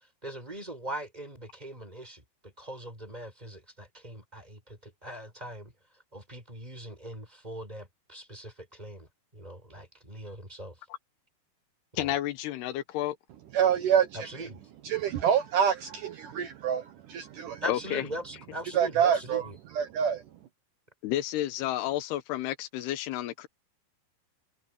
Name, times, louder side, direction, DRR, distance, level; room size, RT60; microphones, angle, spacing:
voice 1, 0.2-2.2 2.6-5.7 6.1-9.1 9.3-10.7 11.9-12.1 14.2-14.6 17.6-19.6, right 1 dB, 10° right, 6.4 m, -41 dB
voice 2, 12.0-13.2 17.7-18.1 21.0-23.5, left 13 dB, 90° left, 3.2 m, -31 dB
voice 3, 13.5-14.5 14.8-17.6 18.7-19.5 19.7-20.2, right 8 dB, 65° right, 2.3 m, -27 dB
omnidirectional pair, 4.5 m